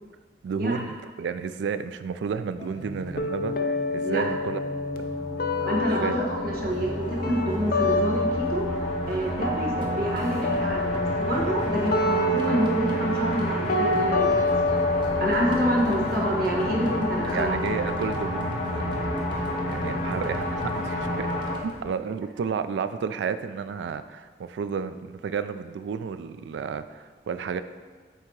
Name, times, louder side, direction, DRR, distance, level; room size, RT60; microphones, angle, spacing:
voice 1, 0.4-4.6 4.9-5.3 6.0-6.2 17.3-19.3 19.7-21.3 21.6-27.6, right 6 dB, 90° right, 12 dB, 0.3 m, -32 dB
sound 1, 2.6-21.5, left 1 dB, 40° left, 1.0 m, -30 dB
sound 2, 3.2-9.1 9.4-17.2, left 2 dB, 55° left, 0.5 m, -28 dB
voice 2, 5.6-8.7 9.0-14.5 15.2-17.8, equal, 55° right, -3 dB, 1.2 m, -27 dB
sound 3, 9.8-21.8, right 1 dB, 25° right, 0.7 m, -45 dB
7.9 x 2.9 x 4.6 m, 1.5 s
head